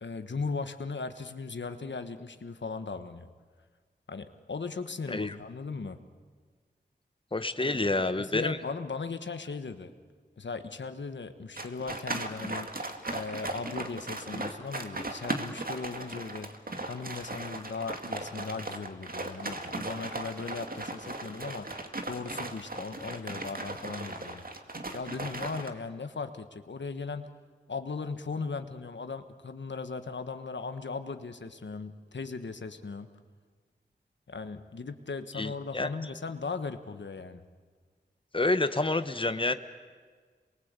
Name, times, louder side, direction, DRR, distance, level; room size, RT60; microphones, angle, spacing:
voice 1, 0.0-3.3 4.1-6.0 7.6-9.9 10.4-12.7 13.1-16.5 16.8-21.7 22.1-24.4 24.9-27.3 27.7-33.1 34.3-37.4, left 4 dB, 90° left, 9 dB, 1.3 m, -38 dB
voice 2, 7.3-8.6 35.4-35.9 38.3-39.5, left 2 dB, 30° left, 10 dB, 1.1 m, -28 dB
sound 1, 11.6-25.7, right 2 dB, 55° right, 2.0 m, -37 dB
28.0 x 22.0 x 8.3 m, 1.5 s
wide cardioid pair, 60°, 18 cm